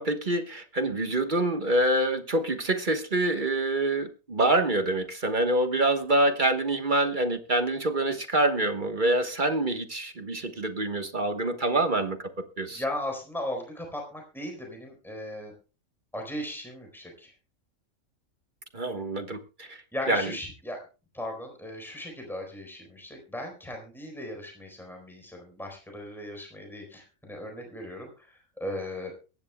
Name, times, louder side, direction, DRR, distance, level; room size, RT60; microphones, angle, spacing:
voice 1, 0.0-12.3 12.6-12.8 18.7-19.8 20.1-20.3, right 1 dB, 40° right, 7 dB, 1.3 m, -26 dB
voice 2, 12.7-15.5 16.1-17.3 19.9-20.8 21.1-29.1, left 1 dB, ahead, 2 dB, 4.3 m, -37 dB
23.0 x 11.0 x 2.2 m, 0.33 s
omnidirectional pair, 1.4 m